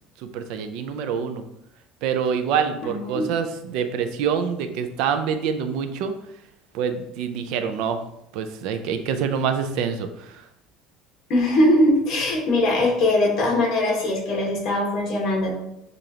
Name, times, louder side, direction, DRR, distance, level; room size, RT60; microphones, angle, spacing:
voice 1, 0.3-1.4 2.0-6.1 6.7-8.0 8.3-10.3, right 7 dB, 65° right, 8 dB, 0.4 m, -26 dB
voice 2, 2.8-3.3 11.3-15.5, left 1 dB, 45° left, -1 dB, 1.4 m, -21 dB
6.6 x 2.5 x 2.9 m, 0.82 s
cardioid pair, 155°, 0 cm